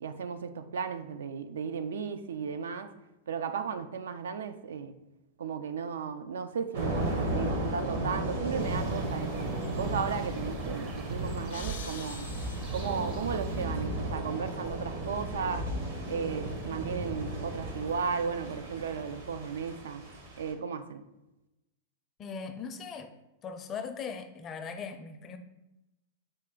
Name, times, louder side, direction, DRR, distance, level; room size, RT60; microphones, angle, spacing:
voice 1, 0.0-2.9 3.3-4.9 5.4-9.5 9.7-12.3 12.7-15.7 16.1-20.0 20.4-21.0, right 6 dB, 85° right, 10 dB, 0.3 m, -35 dB
Thunder / Rain, 6.7-20.5, right 1 dB, 70° right, 1.1 m, -35 dB
sound 1, 8.6-13.7, right 5 dB, 40° right, 0.6 m, -44 dB
sound 2, 11.5-13.6, left 6 dB, 90° left, 0.5 m, -47 dB
voice 2, 22.2-23.1 23.4-25.4, left 6 dB, 30° left, 7 dB, 0.4 m, -39 dB
4.2 x 2.5 x 3.7 m, 0.97 s
hypercardioid pair, 125°, 0 cm